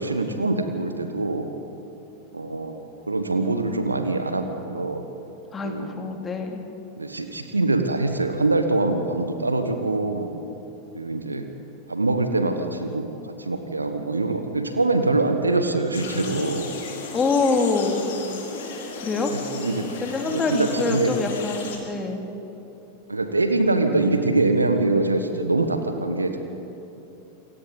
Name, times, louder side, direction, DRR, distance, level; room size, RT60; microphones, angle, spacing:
voice 1, 0.0-1.5 2.3-2.8 3.1-5.0 5.6-5.9 7.0-10.3 10.9-11.4 11.9-16.7 19.2-19.9 20.2-21.2 23.1-26.4, right 2 dB, 80° right, 7 dB, 1.3 m, -24 dB
voice 2, 5.5-6.6 17.1-18.0 19.0-19.3 20.0-22.2, left 4 dB, 20° left, 3 dB, 2.6 m, -25 dB
sound 1, 15.9-21.8, left 4 dB, 55° left, 4.0 m, -35 dB
28.5 x 23.5 x 4.1 m, 3.0 s
figure-of-eight pair, 90°, 0 cm